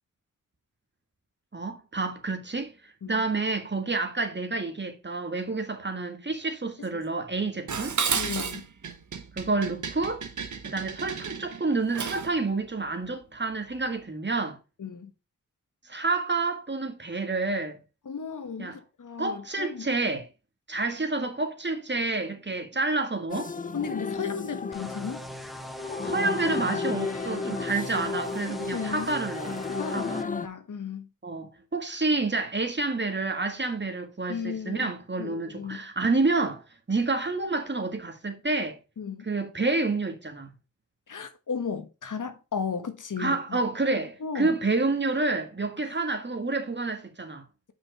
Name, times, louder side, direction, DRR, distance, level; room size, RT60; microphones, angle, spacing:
voice 1, 1.5-2.7 3.1-8.0 9.3-10.3 10.6-14.6 15.9-17.8 18.6-18.8 19.2-20.3 20.7-23.5 25.8-29.6 29.9-30.2 31.2-38.8 39.3-40.5 43.2-47.4, right 3 dB, 35° right, 1.8 m, -29 dB
Dishes pots and pans, 7.7-12.4, right 6 dB, 60° right, 1.2 m, -32 dB
voice 2, 8.1-8.7 14.8-15.1 18.0-19.9 23.7-25.2 28.5-29.1 29.7-31.1 34.3-34.9 35.2-35.9 39.0-39.3 41.1-43.6 44.2-44.6 45.9-46.0, left 6 dB, 65° left, 1.4 m, -35 dB
sound 1, 23.3-30.5, left 4 dB, 25° left, 0.6 m, -33 dB
sound 2, 24.7-30.2, equal, ahead, 1.3 m, -40 dB
5.8 x 5.2 x 6.1 m
cardioid pair, 50°, 33 cm